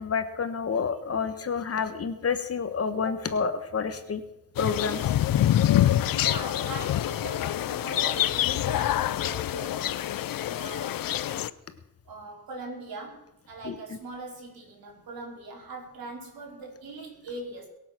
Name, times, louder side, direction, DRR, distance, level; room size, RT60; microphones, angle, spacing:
voice 1, 0.0-4.2 4.6-5.0 13.6-13.8, left 5 dB, 40° left, 10 dB, 1.3 m, -29 dB
sound 1, 4.6-11.5, left 12 dB, 65° left, 0.7 m, -26 dB
voice 2, 6.1-10.1 10.4-11.1 12.0-17.7, right 2 dB, 75° right, 0 dB, 4.8 m, -41 dB
22.5 x 7.6 x 6.1 m, 0.89 s
cardioid pair, 125°, 36 cm